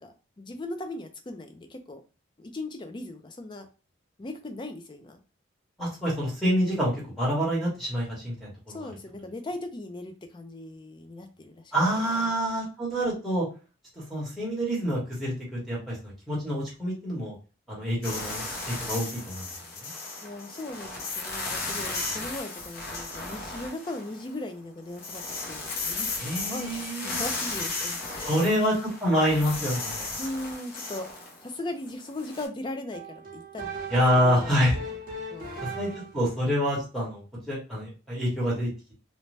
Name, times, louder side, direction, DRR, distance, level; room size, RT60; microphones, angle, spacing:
voice 1, 0.0-2.0 2.4-3.7 4.2-5.2 8.7-11.7 12.0-12.2 20.2-26.1 26.4-28.5 30.2-31.1 31.4-33.7 34.2-34.9 35.3-35.7, left 2 dB, 25° left, 6 dB, 0.4 m, -38 dB
voice 2, 5.8-8.9 11.7-13.5 14.1-17.3 17.7-19.5 19.8-19.9 26.2-27.2 28.2-30.1 33.9-34.8 35.6-38.9, equal, ahead, -6 dB, 1.0 m, -27 dB
sound 1, 18.0-24.4 24.8-32.5, left 3 dB, 50° left, 0.7 m, -35 dB
sound 2, 32.9-36.3, right 3 dB, 45° right, 0.7 m, -38 dB
2.6 x 2.1 x 3.1 m, 0.33 s
head